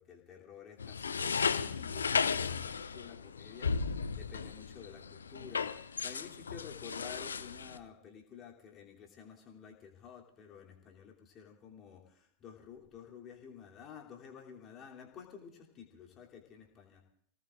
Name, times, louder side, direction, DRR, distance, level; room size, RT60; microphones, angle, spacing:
voice 1, 0.0-17.0, left 7 dB, 30° left, -1 dB, 3.0 m, -52 dB
sound 1, 0.8-7.8, left 5 dB, 70° left, 0.5 m, -35 dB
29.0 x 18.5 x 2.5 m, 0.65 s
figure-of-eight pair, 90°, 0 cm